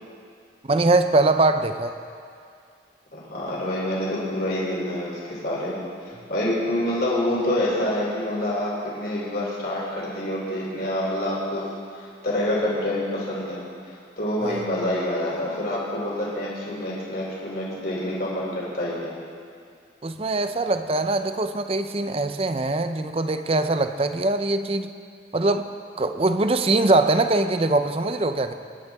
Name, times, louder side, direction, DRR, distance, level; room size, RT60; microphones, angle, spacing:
voice 1, 0.7-1.9 14.4-14.6 20.0-24.9 25.3-25.7 26.0-28.5, right 2 dB, 30° right, 9 dB, 0.6 m, -22 dB
voice 2, 3.1-5.8 6.3-19.1, left 1 dB, 55° left, -5 dB, 3.4 m, -27 dB
24.0 x 11.0 x 3.6 m, 2.3 s
head